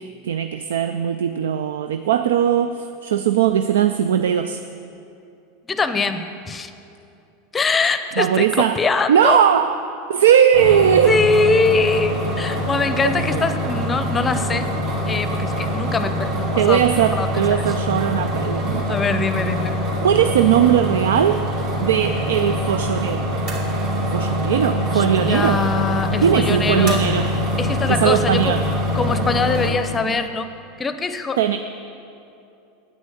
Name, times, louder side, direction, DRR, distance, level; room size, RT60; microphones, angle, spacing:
voice 1, 0.0-4.6 8.2-8.8 9.1-9.7 10.1-11.2 13.3-13.4 16.6-19.0 20.0-21.4 21.8-23.3 24.1-25.6 26.2-27.3 27.9-28.6 31.4-31.6, right 9 dB, 80° right, 9 dB, 0.3 m, -19 dB
voice 2, 5.7-6.7 7.5-9.4 11.0-14.7 15.1-16.8 17.1-17.7 18.9-19.8 24.8-27.1 27.6-28.6 28.9-30.5 30.8-31.4, left 4 dB, 20° left, 11 dB, 0.6 m, -22 dB
sound 1, 10.5-29.7, left 1 dB, 55° right, 2.5 m, -24 dB
8.7 x 6.2 x 8.3 m, 2.7 s
hypercardioid pair, 95°, 0 cm